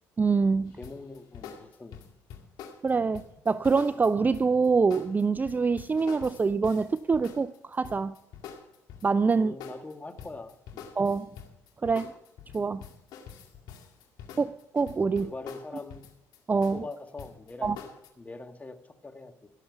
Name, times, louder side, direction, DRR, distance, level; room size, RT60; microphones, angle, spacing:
voice 1, 0.2-0.8 2.8-8.1 9.0-9.6 11.0-11.3 11.8-12.1 12.5-12.8 14.4-15.3 16.5-16.8 17.6-17.8, right 4 dB, 25° right, 0.4 m, -25 dB
voice 2, 0.7-2.0 9.4-10.9 15.2-16.1 16.7-17.7 18.2-19.3, left 3 dB, 20° left, 1.6 m, -42 dB
sound 1, 0.8-9.3 9.6-18.1, left 7 dB, 75° left, 2.1 m, -46 dB
16.5 x 7.1 x 6.8 m
supercardioid pair, 70°, 7 cm